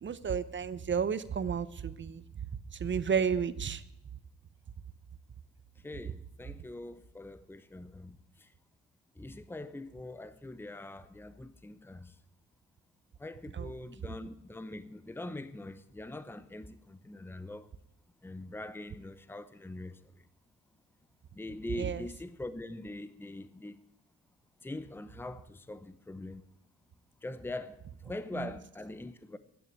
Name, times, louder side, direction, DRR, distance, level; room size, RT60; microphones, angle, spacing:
voice 1, 0.0-2.2 2.7-3.8 13.5-13.7 14.1-14.2 21.8-22.0 28.3-28.5, right 7 dB, 40° right, 0.8 m, -32 dB
voice 2, 5.8-8.5 9.2-12.1 13.2-17.7 18.2-20.0 21.3-23.7 24.6-26.4 27.2-27.8 28.0-29.4, left 2 dB, 5° left, 0.8 m, -43 dB
11.0 x 9.6 x 9.3 m
cardioid pair, 90°, 30 cm